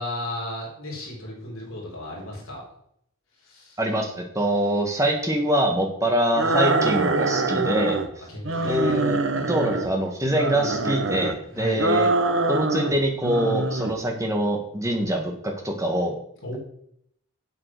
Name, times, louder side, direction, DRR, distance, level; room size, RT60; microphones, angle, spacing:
voice 1, 0.0-2.6 3.4-3.8 8.3-9.0 9.7-9.8 11.6-11.9 16.4-16.6, left 1 dB, 70° left, -2 dB, 4.0 m, -34 dB
voice 2, 3.8-8.0 8.7-9.2 9.5-12.1 12.5-16.1, right 1 dB, 15° right, 2 dB, 1.7 m, -24 dB
sound 1, 6.3-8.1 8.4-9.9 10.3-11.4 11.8-13.0 13.2-14.0, right 3 dB, 60° right, 1.0 m, -24 dB
8.3 x 7.6 x 6.1 m, 0.70 s
head